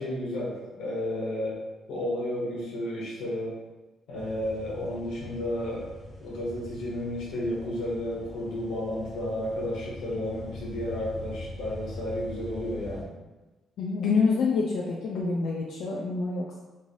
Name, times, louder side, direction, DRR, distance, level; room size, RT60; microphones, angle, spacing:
voice 1, 0.0-1.6 1.9-3.5 4.1-5.9 6.2-13.1, left 1 dB, 90° left, -5 dB, 1.0 m, -32 dB
sound 1, 4.1-13.0, left 1 dB, 35° left, 0.7 m, -43 dB
voice 2, 13.8-16.6, left 4 dB, 65° left, -3 dB, 0.3 m, -27 dB
3.1 x 2.5 x 2.6 m, 1.1 s
cardioid pair, 150°, 0 cm